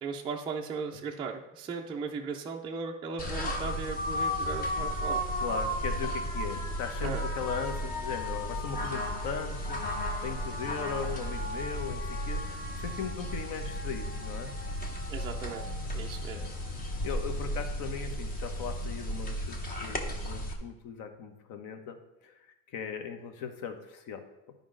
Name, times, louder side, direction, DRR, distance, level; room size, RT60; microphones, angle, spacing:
voice 1, 0.0-5.2 7.0-7.2 15.1-15.7 15.9-16.4, right 5 dB, 15° right, -1 dB, 0.4 m, -37 dB
sound 1, 3.2-20.5, equal, 20° left, 0.7 m, -34 dB
voice 2, 5.1-9.8 10.2-14.5 16.3-16.5 17.0-22.0 22.2-24.2, left 6 dB, 45° left, 7 dB, 1.0 m, -38 dB
10.5 x 5.3 x 3.8 m, 0.96 s
cardioid pair, 150°, 44 cm